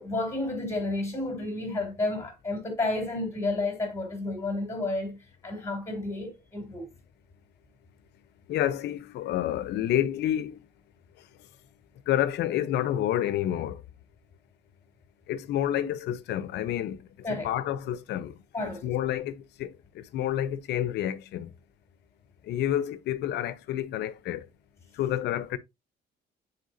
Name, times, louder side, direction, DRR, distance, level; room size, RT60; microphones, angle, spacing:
voice 1, 0.0-5.2 5.4-6.9 17.2-17.5 18.5-18.9, left 2 dB, 15° left, 3.0 m, -31 dB
voice 2, 8.5-10.5 12.1-13.8 15.3-17.0 17.4-18.3 18.8-19.3 19.6-19.7 20.1-21.5 22.5-24.4 25.0-25.6, left 11 dB, 75° left, 0.8 m, -28 dB
9.5 x 4.6 x 2.7 m
cardioid pair, 165°, 17 cm